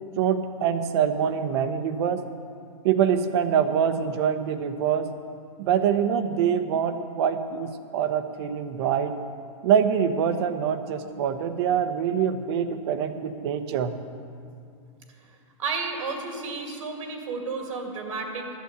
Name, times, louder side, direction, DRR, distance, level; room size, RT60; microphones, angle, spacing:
voice 1, 0.2-2.2 2.8-5.1 5.6-9.2 9.6-13.9, right 8 dB, 55° right, 9 dB, 0.9 m, -24 dB
voice 2, 15.6-18.5, right 4 dB, 80° right, 2 dB, 2.3 m, -32 dB
11.5 x 8.1 x 8.0 m, 2.4 s
hypercardioid pair, 145°, 17 cm